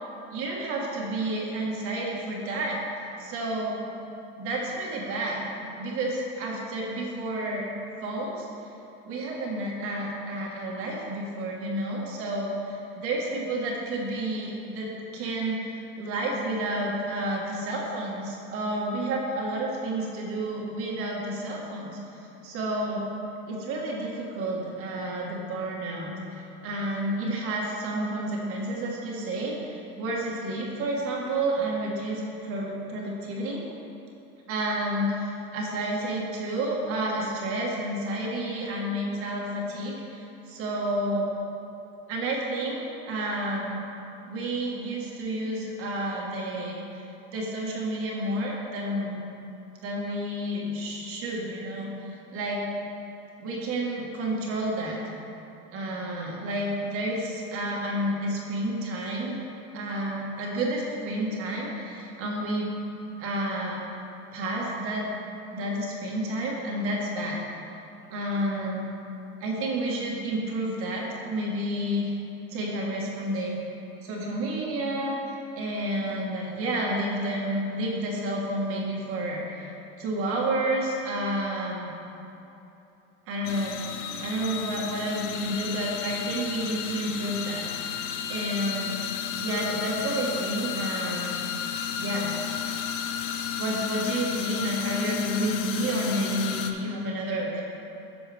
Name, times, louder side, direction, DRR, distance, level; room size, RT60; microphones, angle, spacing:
voice 1, 0.3-2.8 3.2-3.8 4.4-5.5 5.8-7.7 8.0-8.4 9.1-14.9 15.1-23.1 23.5-33.6 34.5-41.3 42.1-43.8 44.2-47.0 47.3-49.2 49.8-52.6 53.4-55.0 55.7-59.4 59.7-62.7 63.2-63.8 64.3-65.1 65.5-67.4 68.1-68.9 69.4-72.1 72.5-73.6 74.0-79.7 80.0-81.9 83.3-83.8 84.2-88.0 88.3-89.1 89.4-91.4 92.0-92.3 93.6-97.6, right 1 dB, 50° right, -2 dB, 1.7 m, -30 dB
sound 1, 83.4-96.7, left 8 dB, 65° left, 0.7 m, -32 dB
12.0 x 6.9 x 3.5 m, 3.0 s
cardioid pair, 145°, 29 cm